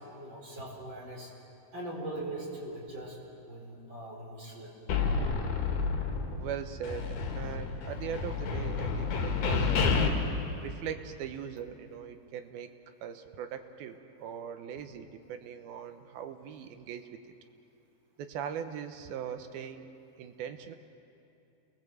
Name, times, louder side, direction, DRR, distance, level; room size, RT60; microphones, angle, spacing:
voice 1, 0.1-1.3 1.7-3.2 3.5-4.7, right 1 dB, 30° right, -2 dB, 4.6 m, -40 dB
sound 1, 4.9-6.6 6.8-10.1, left 5 dB, 75° left, 3.9 m, -30 dB
voice 2, 6.3-10.0 10.6-12.8 13.0-17.3 18.2-19.9 20.2-20.7, right 8 dB, 75° right, 8 dB, 2.6 m, -40 dB
28.5 x 20.5 x 7.9 m, 2.8 s
omnidirectional pair, 4.7 m